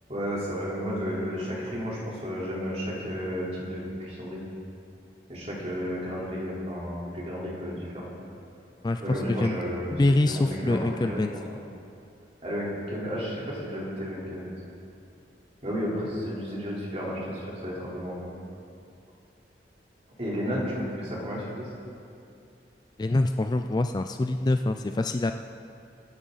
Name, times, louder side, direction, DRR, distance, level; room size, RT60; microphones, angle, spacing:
voice 1, 0.1-4.4 5.3-8.1 9.0-9.9 10.3-11.6 12.4-14.6 15.6-18.3 20.2-21.7, equal, 35° right, -6 dB, 3.8 m, -32 dB
voice 2, 8.8-9.6 9.9-11.3 23.0-25.3, left 2 dB, 25° left, 7 dB, 0.3 m, -25 dB
23.5 x 10.0 x 4.1 m, 2.5 s
head